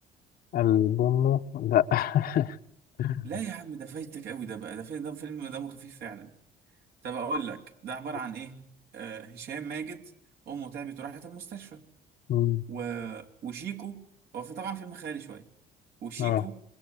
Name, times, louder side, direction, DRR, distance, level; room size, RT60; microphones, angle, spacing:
voice 1, 0.5-2.5 3.0-3.2 12.3-12.6 16.2-16.4, left 11 dB, 60° left, 1.0 m, -25 dB
voice 2, 3.2-6.3 7.0-10.0 10.5-11.8 12.7-14.0 14.3-15.4 16.0-16.6, right 6 dB, 70° right, 3.7 m, -37 dB
27.0 x 22.5 x 8.4 m
cardioid pair, 110°, 17 cm